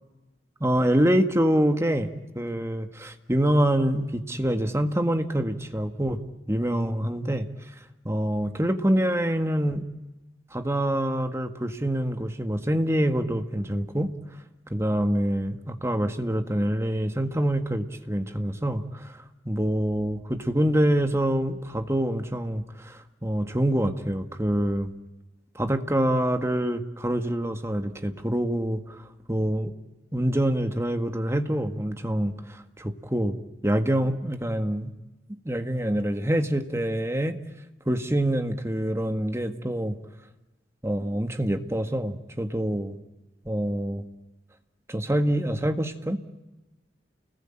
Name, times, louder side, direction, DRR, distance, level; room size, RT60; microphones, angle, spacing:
voice 1, 0.6-6.2 6.5-7.5 8.1-9.9 10.5-14.1 14.7-19.2 19.5-24.9 25.6-29.0 29.3-29.7 30.1-33.3 33.6-34.9 35.5-37.4 37.9-40.0 40.8-43.0 43.5-44.0 44.9-46.2, right 1 dB, 15° right, 7 dB, 1.7 m, -26 dB
30.0 x 21.0 x 8.9 m, 1.1 s
head